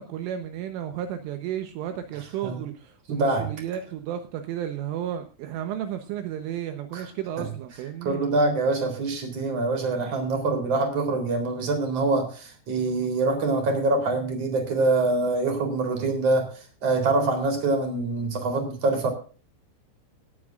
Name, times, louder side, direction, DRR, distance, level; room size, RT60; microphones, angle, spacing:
voice 1, 0.0-8.2, right 10 dB, 75° right, 7 dB, 3.4 m, -33 dB
voice 2, 3.1-3.5 6.9-7.0 8.0-19.1, right 3 dB, 30° right, 6 dB, 4.0 m, -25 dB
18.0 x 12.5 x 2.5 m, 0.37 s
omnidirectional pair, 5.9 m